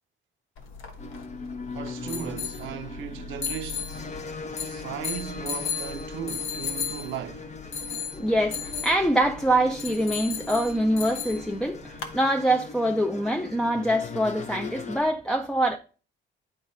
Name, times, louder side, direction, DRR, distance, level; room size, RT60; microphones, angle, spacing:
sound 1, 0.6-12.2, left 7 dB, 85° left, 1.3 m, -36 dB
sound 2, 1.0-15.0, left 3 dB, 35° left, 0.8 m, -40 dB
voice 1, 1.7-4.0 4.6-7.5, right 9 dB, 80° right, 0.7 m, -37 dB
voice 2, 7.8-15.8, right 1 dB, 5° left, 0.5 m, -25 dB
9.5 x 3.9 x 3.9 m
cardioid pair, 90°, 20 cm